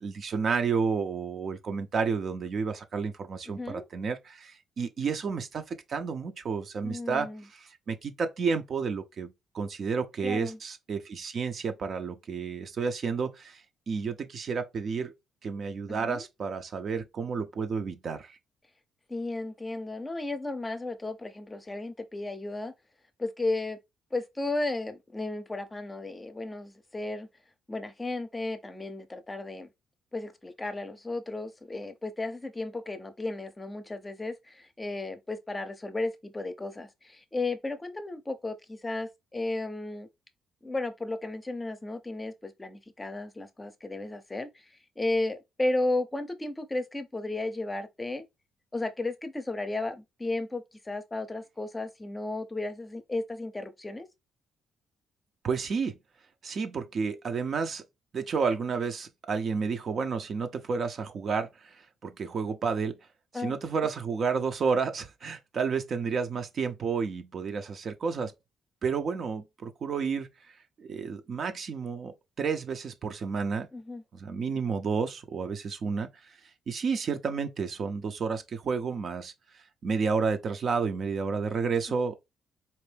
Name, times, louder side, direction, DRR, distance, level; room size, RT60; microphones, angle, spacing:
voice 1, 0.0-13.6 13.9-15.1 15.4-18.4 55.4-56.0 56.4-57.8 58.1-63.0 63.3-68.3 68.8-70.3 70.8-73.7 74.1-76.3 76.7-82.4, right 5 dB, 55° right, 0.7 m, -31 dB
voice 2, 6.8-7.4 10.2-10.6 15.9-16.2 19.1-22.7 23.2-23.8 24.1-27.3 27.7-29.7 30.1-40.1 40.6-44.5 45.0-48.2 48.7-54.1 63.3-63.5 73.7-74.0, left 2 dB, 20° left, 0.7 m, -34 dB
4.2 x 2.6 x 3.3 m
cardioid pair, 85°, 0 cm